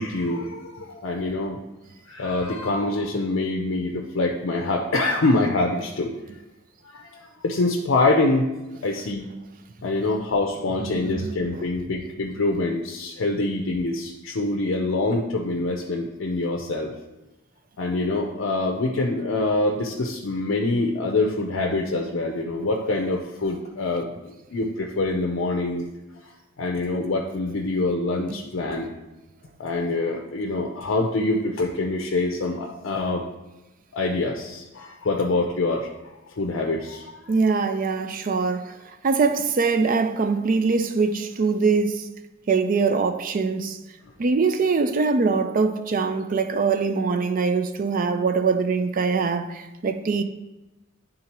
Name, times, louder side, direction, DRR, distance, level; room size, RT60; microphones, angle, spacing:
voice 1, 0.0-1.6 2.1-6.1 6.9-8.5 8.8-9.3 9.8-16.9 17.8-25.9 26.6-28.9 29.6-33.2 33.9-35.9 36.4-37.1, left 2 dB, 65° left, 0.5 m, -25 dB
voice 2, 10.8-11.6 28.3-28.4 37.3-42.1 42.5-43.8 44.2-50.2, right 4 dB, 45° right, 0.4 m, -23 dB
10.5 x 3.7 x 2.9 m
head